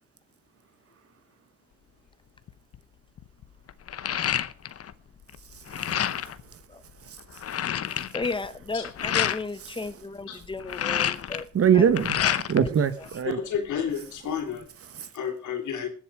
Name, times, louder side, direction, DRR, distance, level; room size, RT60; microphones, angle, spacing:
sound 1, 2.5-2.8 3.2-4.9 5.2-6.4 6.9-7.0 7.2-9.4 10.4-12.7 13.0-13.9, left 10 dB, 50° left, 0.9 m, -29 dB
voice 1, 5.5-6.6 7.0-7.4 9.6-9.7 11.5-12.2 12.5-13.4 14.9-15.1, right 8 dB, 50° right, 1.4 m, -24 dB
voice 2, 8.1-11.5 11.7-11.9 12.2-12.7, left 3 dB, 15° left, 1.2 m, -34 dB
voice 3, 13.2-14.7 15.1-15.9, left 8 dB, 75° left, 3.1 m, -31 dB
20.5 x 7.6 x 4.8 m
cardioid pair, 90°, 30 cm